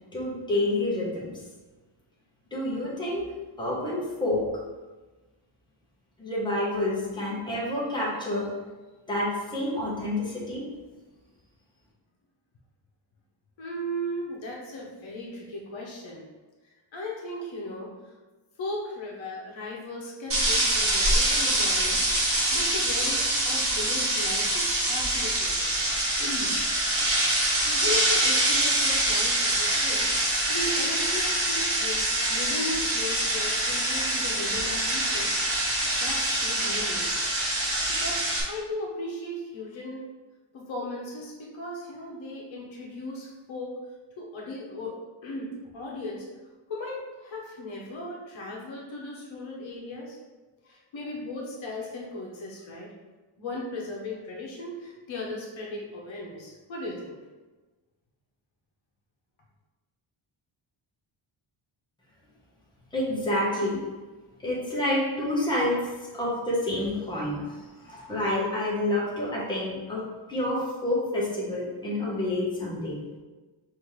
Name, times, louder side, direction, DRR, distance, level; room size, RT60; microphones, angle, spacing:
voice 1, 0.1-1.3 2.5-3.2 3.6-4.5 6.2-8.5 9.1-10.6 62.9-63.8 64.4-73.0, left 1 dB, 10° left, -6 dB, 1.0 m, -28 dB
voice 2, 13.6-16.3 16.6-18.1 18.6-25.7 26.2-26.5 27.3-35.4 36.0-37.1 37.6-40.1 40.5-43.8 44.2-44.9 45.2-46.3 46.7-50.2 50.6-52.9 53.4-57.2, left 1 dB, 65° left, -2 dB, 1.0 m, -37 dB
sound 1, 20.3-38.4, right 1 dB, 25° right, 0.9 m, -25 dB
5.5 x 2.8 x 3.1 m, 1.2 s
wide cardioid pair, 170°, 50 cm